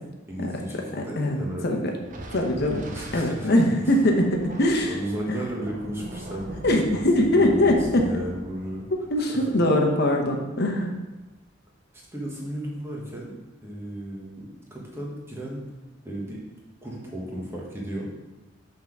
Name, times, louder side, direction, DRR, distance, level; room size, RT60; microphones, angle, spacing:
voice 1, 0.3-1.7 2.9-3.5 4.9-8.9 9.3-9.4 12.1-13.3 13.6-15.6 16.0-16.4 16.8-18.1, right 1 dB, 15° right, -3 dB, 1.4 m, -34 dB
voice 2, 1.2-1.9 2.3-2.8 3.1-5.0 5.3-5.4 6.6-8.0 9.1-11.0, left 1 dB, 55° left, 2 dB, 1.0 m, -22 dB
Thunder, 2.0-10.8, right 1 dB, 40° right, 0.8 m, -41 dB
5.8 x 3.9 x 6.0 m, 1.1 s
head